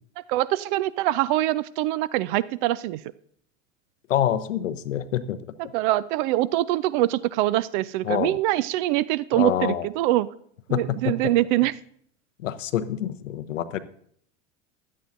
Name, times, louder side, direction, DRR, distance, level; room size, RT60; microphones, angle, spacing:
voice 1, 0.3-3.0 5.7-10.3 10.7-11.7, right 16 dB, 40° right, 18 dB, 0.4 m, -24 dB
voice 2, 4.1-5.4 8.0-8.4 9.3-9.9 10.7-11.3 12.4-13.8, left 11 dB, 70° left, 12 dB, 0.9 m, -26 dB
16.0 x 11.0 x 2.6 m, 0.64 s
figure-of-eight pair, 85°, 39 cm